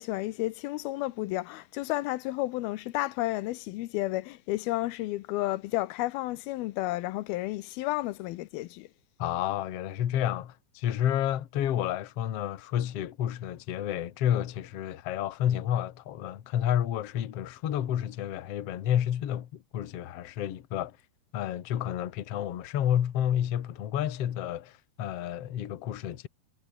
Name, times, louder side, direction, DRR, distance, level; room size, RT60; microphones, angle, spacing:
voice 1, 0.0-8.9, left 18 dB, 85° left, 2.7 m, -32 dB
voice 2, 9.2-21.0 21.3-26.3, left 10 dB, 55° left, 2.0 m, -30 dB
omnidirectional pair, 4.3 m